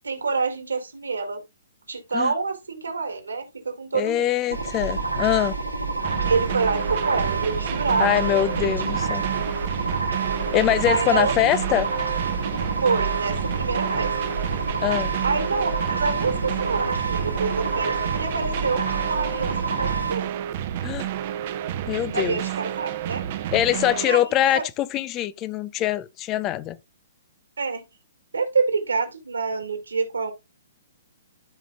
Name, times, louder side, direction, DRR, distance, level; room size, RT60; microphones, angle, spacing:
voice 1, 0.0-1.4 1.9-4.3 6.2-8.7 9.0-9.2 10.9-11.3 12.8-14.1 15.2-20.3 22.1-23.2 24.0-24.6 27.6-27.8 28.3-30.3, right 4 dB, 70° right, 2.1 m, -27 dB
voice 2, 3.9-5.6 8.0-9.2 10.5-11.9 14.8-15.1 20.8-21.1 21.9-22.4 23.5-26.8, left 12 dB, 25° left, 0.5 m, -23 dB
sound 1, 4.5-20.1, right 3 dB, 90° right, 2.2 m, -28 dB
sound 2, 6.0-24.0, right 10 dB, 40° right, 0.8 m, -30 dB
13.0 x 5.0 x 2.3 m
figure-of-eight pair, 120°, 0 cm